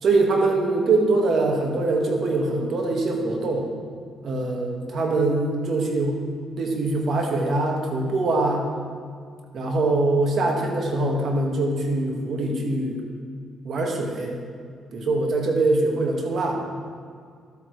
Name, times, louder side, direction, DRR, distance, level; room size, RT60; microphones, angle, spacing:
voice 1, 0.0-3.7 4.2-6.2 6.6-8.7 9.5-13.0 13.6-14.4 14.9-16.6, right 2 dB, 60° right, 0 dB, 1.8 m, -23 dB
13.0 x 8.5 x 3.3 m, 2.1 s
cardioid pair, 90°, 0 cm